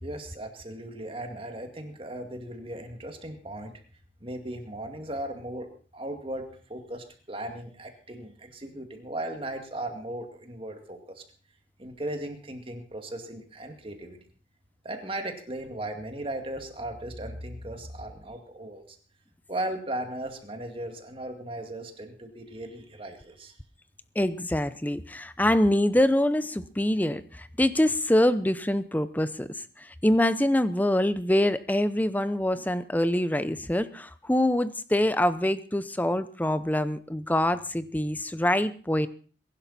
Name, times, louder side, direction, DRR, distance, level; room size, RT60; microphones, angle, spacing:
voice 1, 0.0-3.7 4.2-5.7 5.9-11.0 11.8-14.2 14.8-18.8 19.5-23.5, right 1 dB, 30° right, 5 dB, 2.2 m, -37 dB
voice 2, 24.2-39.1, left 1 dB, 10° left, 14 dB, 0.6 m, -25 dB
22.0 x 11.5 x 4.2 m, 0.41 s
head